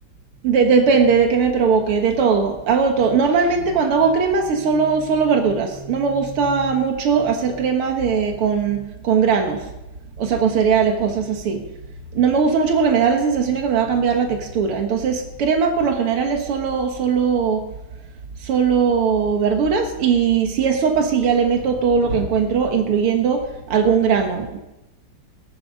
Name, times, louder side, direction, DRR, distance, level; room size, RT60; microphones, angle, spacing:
voice 1, 0.4-9.7 10.2-11.6 12.1-17.6 18.4-24.6, right 6 dB, 90° right, 4 dB, 2.3 m, -19 dB
17.5 x 10.5 x 5.3 m, 0.95 s
omnidirectional pair, 2.3 m